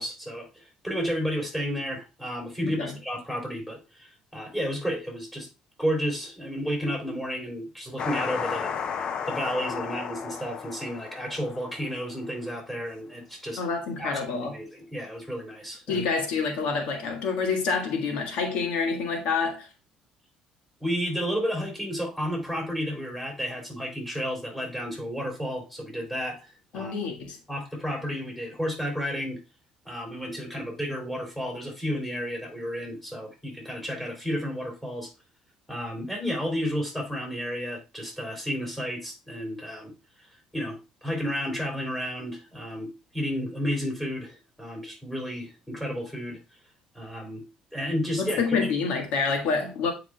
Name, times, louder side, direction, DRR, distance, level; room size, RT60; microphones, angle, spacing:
voice 1, 0.0-5.5 5.8-8.7 9.3-13.6 14.0-16.0 20.8-26.9 27.5-29.4 29.8-35.1 35.7-40.3 40.5-46.4 46.9-47.4 47.7-48.4, equal, 5° left, 3.0 m, -32 dB
voice 2, 2.6-2.9 13.6-14.5 15.9-19.7 26.7-27.4 48.2-49.9, left 5 dB, 80° left, 1.5 m, -27 dB
sound 1, 8.0-12.3, left 6 dB, 45° left, 0.6 m, -33 dB
9.1 x 4.8 x 2.3 m
cardioid pair, 125°, 2 cm